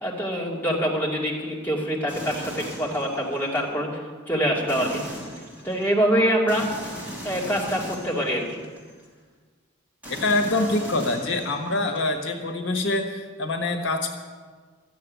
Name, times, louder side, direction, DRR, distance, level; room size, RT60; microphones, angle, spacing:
voice 1, 0.0-5.0 5.6-6.6 7.2-8.6, equal, 10° left, -5 dB, 2.5 m, -25 dB
sound 1, 2.1-3.6 4.7-5.9 6.5-9.1 10.0-12.0, equal, 10° right, 3.0 m, -38 dB
voice 2, 10.2-14.2, left 2 dB, 70° left, 4 dB, 1.3 m, -25 dB
13.0 x 7.6 x 9.2 m, 1.5 s
head